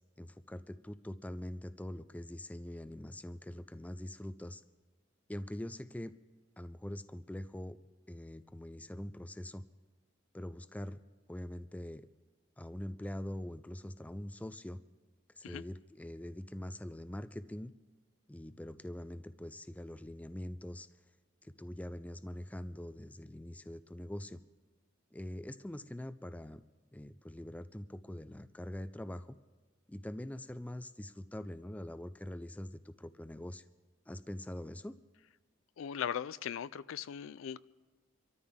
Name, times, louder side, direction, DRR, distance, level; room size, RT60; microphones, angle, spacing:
voice 1, 0.2-4.6 5.3-6.1 6.6-7.8 8.1-9.6 10.3-11.0 11.3-12.1 12.6-14.8 15.3-17.7 18.3-20.9 21.4-24.4 25.1-26.6 26.9-29.4 29.9-33.6 34.1-34.9, left 1 dB, 5° left, 13 dB, 0.4 m, -43 dB
voice 2, 35.8-37.6, left 8 dB, 75° left, 17 dB, 0.4 m, -39 dB
26.0 x 13.5 x 3.6 m, 1.2 s
head